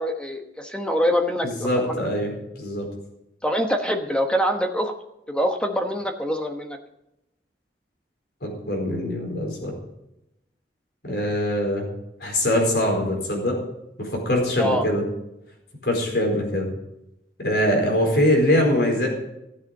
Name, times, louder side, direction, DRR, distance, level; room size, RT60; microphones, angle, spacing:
voice 1, 0.0-1.9 3.4-4.9 5.3-6.8 14.6-14.9, equal, 5° left, 5 dB, 1.1 m, -24 dB
voice 2, 1.4-2.9 8.4-9.7 11.0-11.9 12.2-13.6 14.0-15.0 15.8-16.7 17.4-19.1, left 1 dB, 65° left, 1 dB, 4.6 m, -23 dB
15.5 x 8.2 x 6.6 m, 0.88 s
head